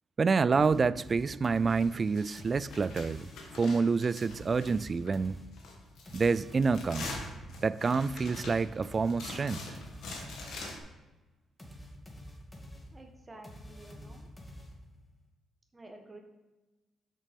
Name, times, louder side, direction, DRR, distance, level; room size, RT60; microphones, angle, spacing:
voice 1, 0.2-3.3 3.6-5.4 6.1-7.2 7.6-9.6, right 4 dB, 40° right, 18 dB, 0.3 m, -28 dB
sound 1, 0.5-3.6 4.2-10.9 11.6-15.1, left 1 dB, 20° left, 2.0 m, -49 dB
sound 2, 1.7-5.2 5.5-10.8, left 2 dB, 70° left, 1.8 m, -44 dB
voice 2, 12.9-14.3 15.7-16.2, right 2 dB, 25° right, 3 dB, 1.3 m, -51 dB
6.7 x 6.1 x 5.3 m, 1.1 s
supercardioid pair, 60°, 0 cm